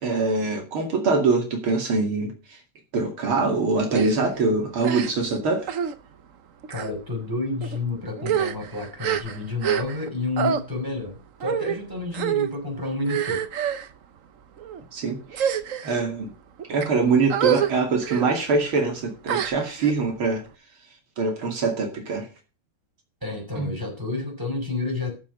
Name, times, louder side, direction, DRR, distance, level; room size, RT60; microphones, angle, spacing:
voice 1, 0.0-2.6 2.9-5.7 14.9-15.6 15.8-16.3 16.7-20.4 21.2-22.3 23.6-23.7, right 4 dB, 80° right, 3.3 m, -24 dB
sound 1, 3.9-4.1 4.8-5.3 5.7-5.9 6.6-6.9 7.6-7.8 8.2-10.1 10.4-10.6 11.4-11.8 12.1-12.5 13.0-13.9 14.6-14.8 15.3-16.0 16.6-16.9 17.3-17.7 18.0-18.3 19.3-19.9, right 9 dB, 50° right, 1.0 m, -26 dB
voice 2, 6.7-13.5 23.2-25.1, left 3 dB, 10° right, 5.7 m, -30 dB
12.5 x 7.3 x 6.5 m
omnidirectional pair, 2.3 m